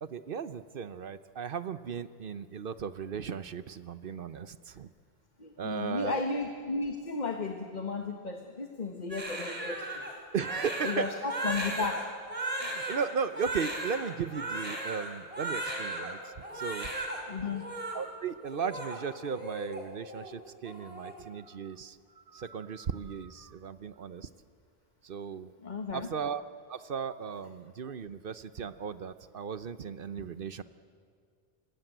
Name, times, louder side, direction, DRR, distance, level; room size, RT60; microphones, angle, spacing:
voice 1, 0.0-4.9 5.6-6.2 10.3-11.1 12.6-16.9 17.9-24.3 25.0-25.5 25.9-26.4 26.7-30.6, right 6 dB, 60° right, 13 dB, 0.9 m, -36 dB
voice 2, 5.4-9.9 10.8-12.1 17.3-17.6 25.6-26.1, left 3 dB, 45° left, 5 dB, 1.4 m, -34 dB
Crying sobbing, 9.1-16.1 16.4-17.2 17.4-18.0 18.4-19.8 20.1-20.3 20.6-21.1, right 2 dB, 35° right, 4.4 m, -36 dB
25.5 x 20.0 x 9.1 m, 2.1 s
omnidirectional pair, 1.0 m